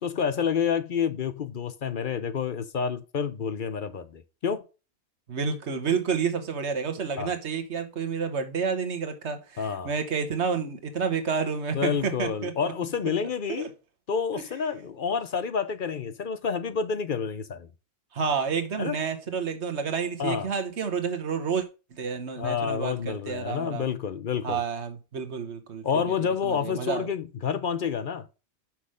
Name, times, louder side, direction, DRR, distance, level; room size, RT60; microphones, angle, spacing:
voice 1, 0.0-4.6 7.2-7.3 9.6-9.9 11.7-13.7 14.1-17.7 18.8-19.0 20.2-20.5 22.4-24.6 25.8-28.2, left 6 dB, 55° left, 0.8 m, -29 dB
voice 2, 5.3-12.7 13.6-13.7 14.3-14.4 18.1-21.6 22.0-23.9 24.4-26.0 26.4-27.1, right 6 dB, 85° right, 1.5 m, -30 dB
6.0 x 5.9 x 4.8 m
omnidirectional pair, 1.1 m